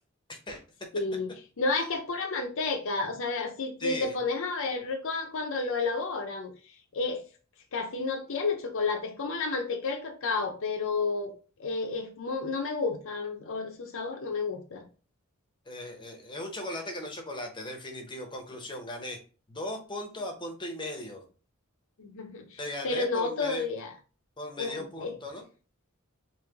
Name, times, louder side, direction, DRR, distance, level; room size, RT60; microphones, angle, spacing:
voice 1, 0.3-0.6 3.8-4.1 15.7-19.2 19.5-21.2 22.6-23.6 24.4-25.4, left 1 dB, 20° left, 3 dB, 0.8 m, -37 dB
voice 2, 0.9-1.3 1.6-6.5 6.9-7.2 7.7-11.3 11.6-14.8 22.0-22.6 22.8-23.9 24.6-25.1, left 3 dB, 65° left, 3 dB, 0.7 m, -31 dB
3.2 x 2.9 x 3.5 m, 0.37 s
head